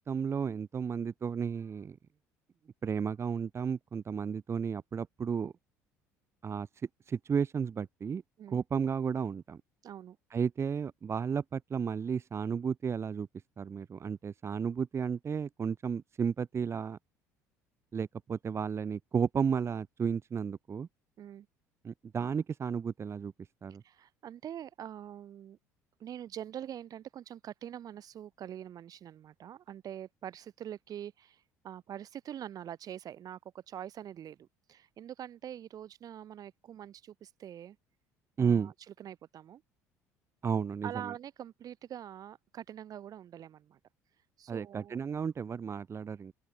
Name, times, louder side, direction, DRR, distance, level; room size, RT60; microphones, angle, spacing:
voice 1, 0.0-2.0 2.8-5.5 6.4-6.7 7.1-8.2 8.5-9.6 10.3-13.3 13.6-17.0 17.9-20.9 21.8-23.3 23.6-23.8 38.4-38.7 40.4-41.1 44.5-46.3, right 6 dB, 35° right, 0.8 m, -33 dB
voice 2, 9.8-10.2 21.2-21.5 23.8-25.6 26.0-37.8 38.4-38.7 39.0-39.6 40.8-43.8 44.4-45.0, right 10 dB, 50° right, 1.5 m, -44 dB
open air
hypercardioid pair, 65°, 8 cm